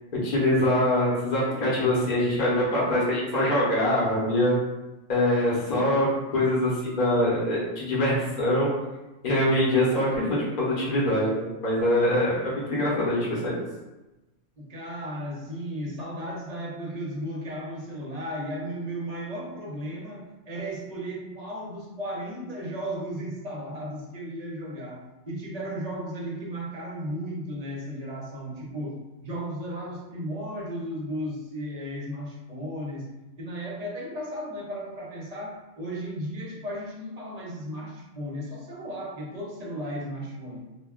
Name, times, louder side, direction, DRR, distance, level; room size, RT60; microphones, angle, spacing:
voice 1, 0.2-4.5 5.1-6.1 6.3-8.7 9.2-13.6, left 1 dB, 40° left, -6 dB, 0.8 m, -24 dB
voice 2, 14.6-33.0 33.4-40.6, equal, 45° right, -3 dB, 0.6 m, -35 dB
2.3 x 2.2 x 3.5 m, 1.0 s
omnidirectional pair, 1.3 m